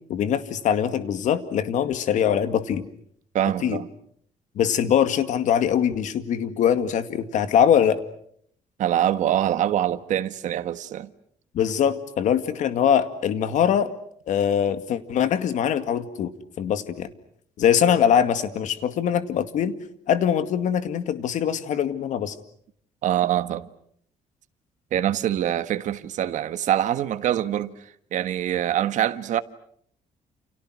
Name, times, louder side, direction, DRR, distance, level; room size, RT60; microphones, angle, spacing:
voice 1, 0.1-2.9 3.6-3.8 4.6-8.0 11.5-13.9 14.3-16.3 16.6-17.1 17.6-19.7 20.1-22.3, left 8 dB, 70° left, 2.2 m, -22 dB
voice 2, 3.3-3.9 8.8-11.1 23.0-23.7 24.9-27.7 28.1-29.4, right 11 dB, 65° right, 1.5 m, -24 dB
30.0 x 29.5 x 6.3 m
cardioid pair, 135°, 13 cm